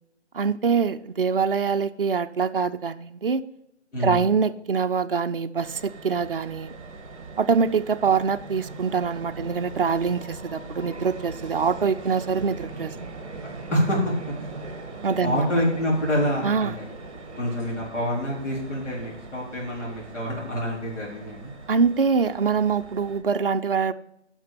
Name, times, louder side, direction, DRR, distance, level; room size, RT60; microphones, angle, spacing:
voice 1, 0.3-3.4 4.0-6.7 7.4-12.9 15.0-15.5 16.4-16.7 21.7-23.9, right 5 dB, 50° right, 7 dB, 0.5 m, -24 dB
voice 2, 3.9-4.2 13.7-14.5 15.2-16.8 17.4-21.5, equal, 80° left, -4 dB, 4.0 m, -26 dB
sound 1, 5.6-23.2, right 3 dB, 30° right, 1.4 m, -40 dB
10.0 x 6.0 x 5.0 m, 0.80 s
figure-of-eight pair, 170°, 36 cm